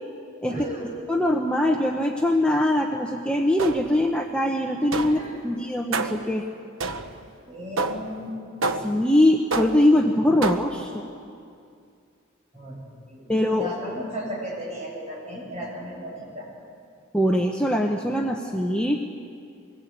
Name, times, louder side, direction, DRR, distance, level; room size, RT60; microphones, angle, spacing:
voice 1, 0.5-0.9 5.0-5.5 7.5-8.3 12.5-12.8 13.0-16.5, equal, 35° right, -4 dB, 7.9 m, -35 dB
voice 2, 1.1-6.5 8.8-11.1 13.3-13.9 17.1-19.0, left 1 dB, 5° left, 0 dB, 1.0 m, -22 dB
sound 1, 3.6-4.1 4.9-5.3 5.9-6.3 6.8-7.3 7.8-8.2 8.6-9.1 9.5-10.0 10.4-10.9, right 3 dB, 80° right, 1.1 m, -29 dB
23.0 x 19.5 x 8.5 m, 2.4 s
head